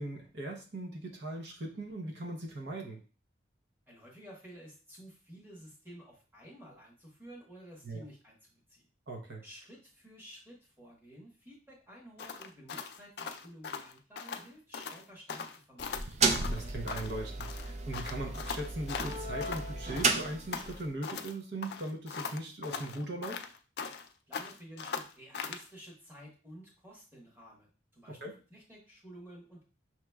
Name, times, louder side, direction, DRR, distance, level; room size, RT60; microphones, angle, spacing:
voice 1, 0.0-3.0 7.8-8.0 9.1-9.4 16.5-23.4 28.2-28.3, right 1 dB, 65° right, 1 dB, 0.7 m, -39 dB
voice 2, 3.9-8.8 9.4-16.1 24.3-28.2 28.5-29.6, equal, 10° right, -3 dB, 1.1 m, -52 dB
sound 1, 12.2-14.5 14.7-15.0 15.3-17.2 17.4-19.7 20.0-21.3 21.6-24.1 24.3-25.7, left 5 dB, 60° left, 0.4 m, -40 dB
sound 2, 15.8-20.9, right 4 dB, 35° right, 0.3 m, -33 dB
sound 3, 19.0-20.7, left 3 dB, 85° left, 0.8 m, -43 dB
6.0 x 2.9 x 2.3 m, 0.35 s
head